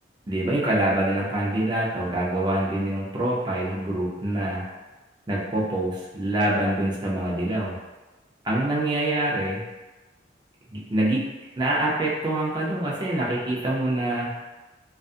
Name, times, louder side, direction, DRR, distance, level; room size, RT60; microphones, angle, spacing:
voice 1, 0.3-4.6 5.3-7.8 8.4-9.6 10.7-11.3 11.6-14.3, right 1 dB, 25° right, -5 dB, 0.4 m, -25 dB
2.6 x 2.4 x 2.4 m, 1.2 s
head